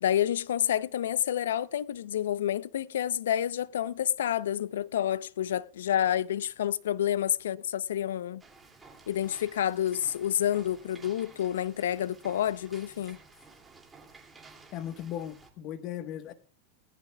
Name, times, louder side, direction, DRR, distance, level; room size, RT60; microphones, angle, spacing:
voice 1, 0.0-8.4 9.1-13.2, left 10 dB, 80° left, 0.6 m, -29 dB
sound 1, 8.4-15.5, right 4 dB, 15° right, 2.5 m, -54 dB
voice 2, 14.7-16.3, left 10 dB, 45° left, 1.3 m, -37 dB
18.5 x 17.0 x 2.3 m
hypercardioid pair, 125°, 0 cm